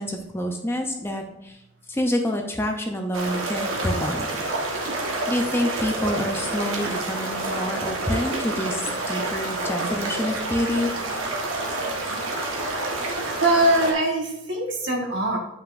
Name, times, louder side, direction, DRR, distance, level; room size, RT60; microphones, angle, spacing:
voice 1, 0.0-1.6 1.9-4.3 5.3-10.9, equal, 10° left, 2 dB, 0.6 m, -27 dB
sound 1, 3.1-13.9, right 2 dB, 80° right, 1.4 m, -28 dB
voice 2, 13.4-15.4, right 1 dB, 60° right, 0 dB, 1.6 m, -22 dB
9.4 x 5.7 x 2.6 m, 0.89 s
head